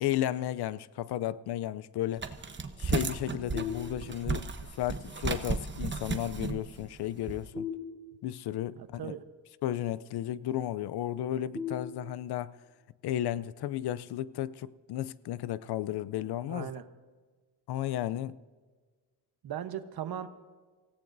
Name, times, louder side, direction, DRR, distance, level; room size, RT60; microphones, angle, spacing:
voice 1, 0.0-2.2 2.8-4.5 4.8-7.7 8.2-9.1 9.6-12.6 13.0-16.7 17.7-18.4, left 12 dB, 70° left, 0.6 m, -33 dB
sound 1, 2.2-7.5, right 4 dB, 25° right, 1.1 m, -34 dB
sound 2, 3.5-4.5 7.5-8.5 11.5-12.5, left 5 dB, 45° left, 6.5 m, -39 dB
voice 2, 8.8-9.2 16.5-16.8 19.4-20.3, right 10 dB, 65° right, 1.1 m, -38 dB
27.0 x 16.5 x 2.7 m
cardioid pair, 85°, 41 cm